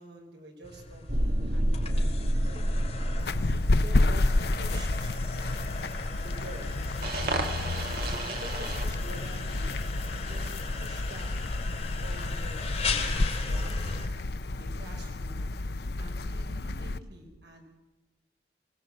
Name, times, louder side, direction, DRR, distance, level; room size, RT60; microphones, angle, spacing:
voice 1, 0.0-2.9 3.7-5.2 6.2-6.7 7.1-7.5 7.9-9.8 10.1-11.4 12.0-14.0 14.5-15.4 16.0-17.6, right 1 dB, 75° right, 2 dB, 5.2 m, -47 dB
sound 1, 0.6-14.1, left 4 dB, 35° left, 2.9 m, -39 dB
sound 2, 1.1-8.9, right 1 dB, 55° right, 1.8 m, -31 dB
sound 3, 3.2-17.0, left 2 dB, 60° left, 0.7 m, -30 dB
24.5 x 18.0 x 7.8 m, 1.1 s
head